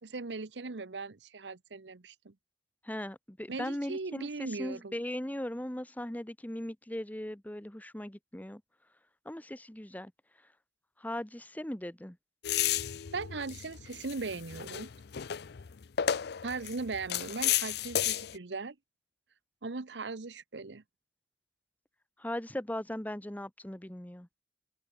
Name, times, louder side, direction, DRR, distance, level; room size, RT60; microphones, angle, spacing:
voice 1, 0.0-2.3 3.5-4.9 13.1-14.9 16.4-18.7 19.6-20.8, right 3 dB, 80° right, 0.9 m, -39 dB
voice 2, 2.8-8.6 9.2-10.1 11.0-12.2 22.2-24.3, left 1 dB, 10° left, 1.1 m, -38 dB
sound 1, 12.4-18.4, left 10 dB, 65° left, 0.5 m, -33 dB
open air
head